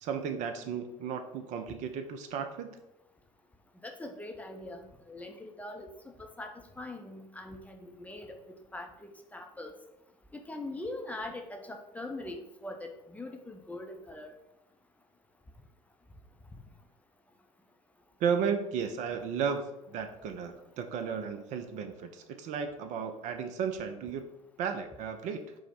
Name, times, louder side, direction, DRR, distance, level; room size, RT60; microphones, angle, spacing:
voice 1, 0.0-2.8 18.2-24.3 24.6-25.4, right 6 dB, 45° right, 7 dB, 0.4 m, -34 dB
voice 2, 3.8-5.9 6.2-9.7 10.3-14.3, left 2 dB, 10° left, 3 dB, 0.5 m, -42 dB
4.5 x 2.0 x 4.2 m, 0.90 s
figure-of-eight pair, 70°, 17 cm